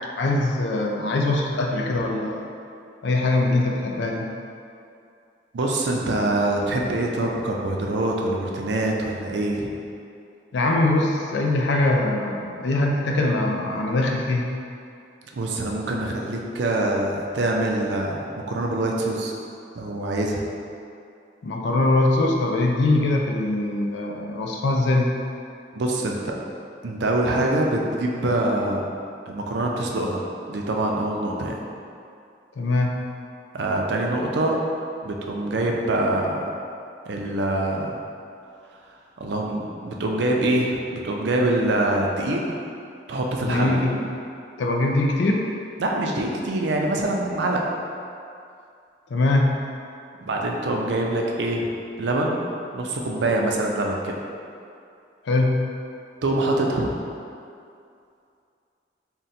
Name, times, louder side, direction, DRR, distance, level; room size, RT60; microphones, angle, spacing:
voice 1, 0.2-2.4 3.0-4.3 10.5-14.5 21.4-25.1 32.6-33.0 43.4-44.0 44.6-45.5 49.1-49.6 55.3-55.6, left 2 dB, 80° left, 1 dB, 0.4 m, -22 dB
voice 2, 5.5-9.7 15.3-19.3 19.8-20.4 25.7-26.3 26.8-28.9 29.3-30.2 30.5-31.6 33.5-34.6 35.0-36.5 37.1-38.0 39.2-42.6 43.1-43.9 45.8-47.6 50.2-51.7 52.0-52.4 52.7-54.2 56.2-56.9, right 1 dB, 75° right, 0 dB, 0.5 m, -24 dB
3.7 x 2.2 x 4.1 m, 2.5 s
head